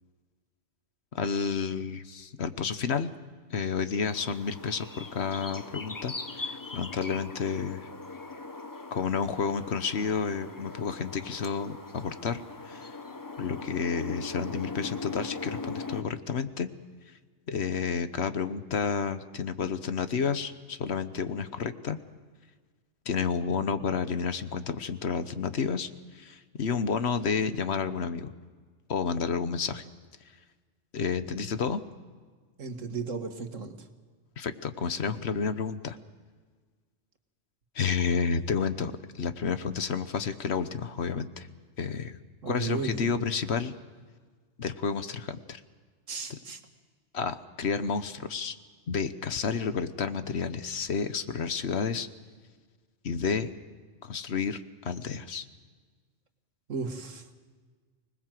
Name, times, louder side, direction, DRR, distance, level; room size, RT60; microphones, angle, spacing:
voice 1, 1.1-3.1 3.5-7.9 8.9-12.4 12.7-12.9 13.4-16.7 17.5-22.0 23.0-28.3 28.9-29.8 30.9-31.8 34.4-36.0 37.7-41.5 41.8-42.2 42.4-43.7 44.6-45.6 47.1-48.5 48.9-52.1 53.0-53.5 54.0-55.4, left 6 dB, 60° left, 11 dB, 1.2 m, -30 dB
sound 1, 4.0-16.0, left 3 dB, 20° left, 0.7 m, -40 dB
voice 2, 32.6-33.9 42.4-43.1 46.1-46.6 56.7-57.3, right 5 dB, 90° right, 6 dB, 2.0 m, -35 dB
25.5 x 20.0 x 7.6 m, 1.5 s
omnidirectional pair, 1.3 m